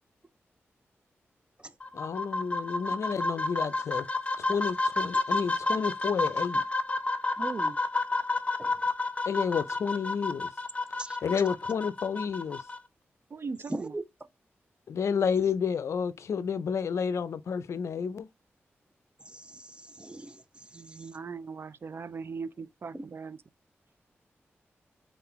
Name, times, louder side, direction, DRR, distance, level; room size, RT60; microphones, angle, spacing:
sound 1, 1.8-12.8, left 2 dB, 25° left, 0.7 m, -31 dB
voice 1, 1.9-4.1 4.4-6.6 9.3-10.5 11.2-12.6 14.9-18.3, left 6 dB, 80° left, 0.4 m, -30 dB
voice 2, 7.4-7.8 13.3-13.9 20.7-23.4, right 5 dB, 55° right, 0.4 m, -39 dB
voice 3, 13.7-14.0 19.2-21.1 22.9-23.0, right 1 dB, 20° right, 0.7 m, -41 dB
3.8 x 3.7 x 2.8 m
cardioid pair, 45°, 5 cm